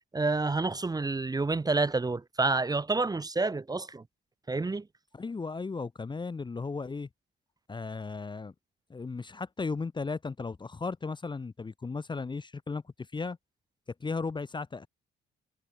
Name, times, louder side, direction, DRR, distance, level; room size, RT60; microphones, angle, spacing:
voice 1, 0.1-4.0 4.5-4.9, right 3 dB, 20° right, 0.9 m, -28 dB
voice 2, 5.1-7.1 7.7-8.5 8.9-12.8 13.1-13.4 14.0-14.9, left 4 dB, 25° left, 0.8 m, -35 dB
cardioid pair, 90°, 20 cm